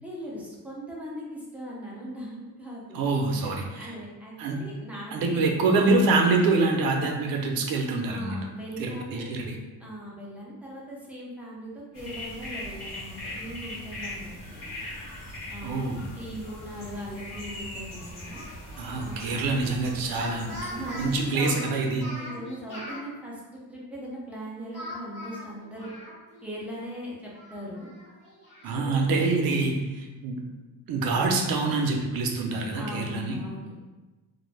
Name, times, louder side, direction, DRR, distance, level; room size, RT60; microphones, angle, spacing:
voice 1, 0.0-5.4 8.1-9.3 9.8-14.7 15.5-15.9 16.1-18.4 19.0-19.4 20.7-21.6 22.1-25.9 26.4-27.9 28.7-29.0 32.7-33.8, equal, 5° right, -6 dB, 0.4 m, -39 dB
voice 2, 2.9-3.9 4.4-4.6 5.1-8.4 8.8-9.6 15.6-16.0 18.8-20.6 20.9-22.1 28.6-30.4 30.9-33.4, right 3 dB, 70° right, 2 dB, 0.5 m, -25 dB
sound 1, 11.9-21.3, left 1 dB, 65° left, 1.3 m, -40 dB
Speech, 18.3-18.9 20.0-23.0 24.7-26.5 26.8-26.9 27.3-28.7, equal, 30° left, 1.1 m, -41 dB
2.5 x 2.1 x 3.2 m, 1.2 s
cardioid pair, 165°, 36 cm